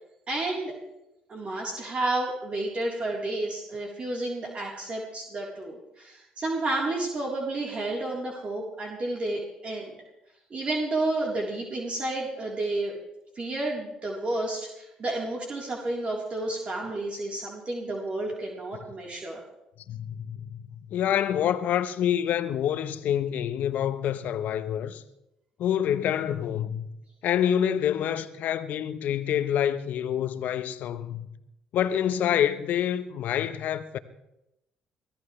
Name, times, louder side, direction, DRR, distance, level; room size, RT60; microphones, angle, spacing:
voice 1, 0.3-0.7 1.3-9.9 10.5-12.9 13.4-19.4, right 2 dB, 40° right, 3.7 m, -31 dB
voice 2, 19.9-20.6 20.9-25.0 25.6-26.9 27.2-31.3 31.7-34.0, left 10 dB, 65° left, 1.0 m, -27 dB
23.5 x 16.0 x 3.3 m
hypercardioid pair, 55°, 3 cm